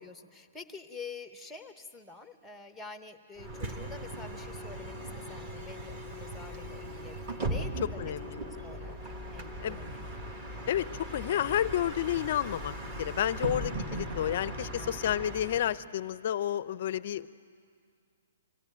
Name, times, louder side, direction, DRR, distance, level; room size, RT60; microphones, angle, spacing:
voice 1, 0.0-7.2 7.5-8.0 8.4-10.2 14.8-15.2, left 4 dB, ahead, 8 dB, 0.8 m, -47 dB
Bus, 3.4-15.8, right 1 dB, 20° right, 1.3 m, -38 dB
voice 2, 8.0-8.4 9.6-9.8 10.7-12.7 13.0-17.3, left 11 dB, 40° left, 17 dB, 0.5 m, -30 dB
25.5 x 16.0 x 9.2 m, 2.2 s
hypercardioid pair, 175°, 0 cm